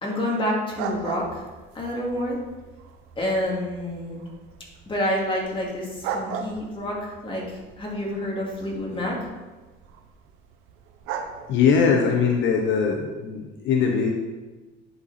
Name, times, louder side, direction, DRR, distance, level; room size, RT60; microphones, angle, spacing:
voice 1, 0.0-1.4 1.7-2.4 3.2-4.2 4.9-9.2, left 1 dB, 25° left, -3 dB, 2.3 m, -28 dB
sound 1, 0.7-12.9, right 6 dB, 90° right, 0.7 m, -39 dB
voice 2, 11.5-14.1, left 6 dB, 70° left, 2 dB, 0.9 m, -21 dB
10.5 x 4.2 x 4.2 m, 1.3 s
cardioid pair, 115°, 20 cm